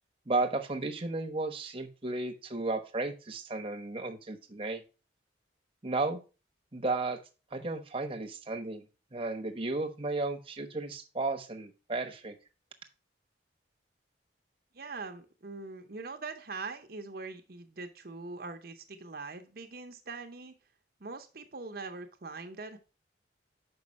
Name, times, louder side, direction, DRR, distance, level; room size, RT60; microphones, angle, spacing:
voice 1, 0.3-4.8 5.8-6.2 6.7-7.2 7.5-8.9 9.1-12.3, right 2 dB, 30° right, 3 dB, 1.0 m, -34 dB
voice 2, 14.7-20.5 21.0-22.8, right 4 dB, 50° right, 5 dB, 0.8 m, -42 dB
6.2 x 5.2 x 5.2 m, 0.33 s
head